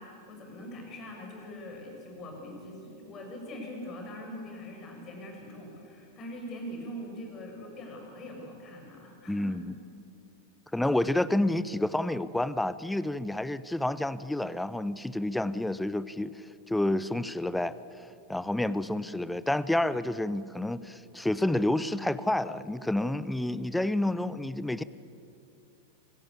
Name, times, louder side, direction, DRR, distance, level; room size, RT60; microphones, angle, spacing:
voice 1, 0.0-9.5, left 1 dB, 30° left, 2 dB, 6.3 m, -42 dB
voice 2, 9.3-9.7 10.7-17.8 18.3-24.8, left 1 dB, 5° left, 16 dB, 0.6 m, -29 dB
26.5 x 17.5 x 8.6 m, 2.7 s
figure-of-eight pair, 90°, 0 cm